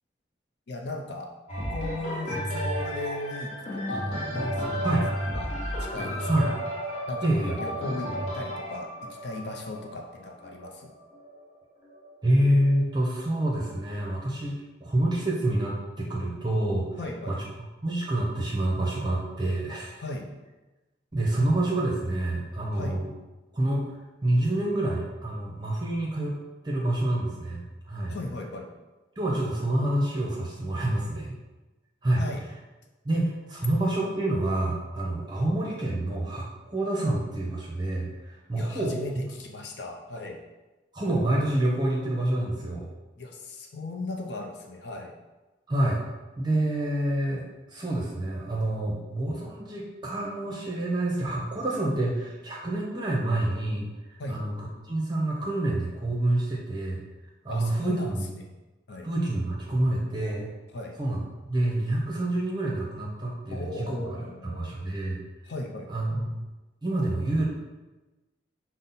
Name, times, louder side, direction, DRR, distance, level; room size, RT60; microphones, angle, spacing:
voice 1, 0.7-1.3 1.7-5.0 5.3-6.5 7.1-10.9 17.0-17.4 20.0-20.3 22.7-23.0 28.1-28.7 32.2-32.4 38.6-40.4 43.2-45.1 54.2-54.4 57.5-58.5 58.9-59.1 60.7-61.0 63.5-64.8 65.5-66.1, left 2 dB, 60° left, 2 dB, 0.5 m, -37 dB
sound 1, 1.5-11.3 11.9-12.0, equal, 35° left, 1.0 m, -32 dB
voice 2, 7.2-7.6 12.2-14.5 14.8-17.0 17.3-20.0 21.1-23.1 23.5-23.9 24.2-26.4 26.6-28.2 29.2-31.4 32.0-32.2 33.0-39.2 40.9-42.9 45.7-46.0 46.4-57.0 57.4-58.3 59.0-60.5 61.0-61.2 61.5-64.0 64.4-65.2 65.9-66.4 66.8-67.4, right 1 dB, 20° right, -3 dB, 0.6 m, -27 dB
5.3 x 2.1 x 4.1 m, 1.1 s
head